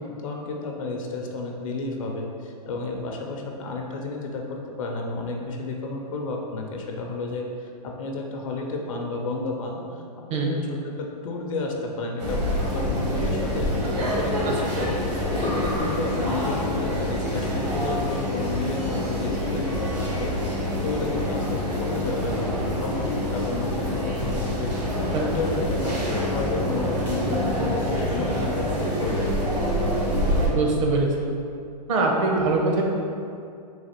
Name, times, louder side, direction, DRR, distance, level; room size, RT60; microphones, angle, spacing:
voice 1, 0.2-10.0 10.3-20.3 20.8-29.3, left 3 dB, 50° left, 1 dB, 0.5 m, -32 dB
sound 1, 12.2-30.5, equal, 75° right, 1.4 m, -26 dB
voice 2, 30.5-31.1 31.9-32.8, right 3 dB, 50° right, 0 dB, 0.7 m, -22 dB
4.0 x 2.5 x 4.3 m, 2.5 s
hypercardioid pair, 140°, 21 cm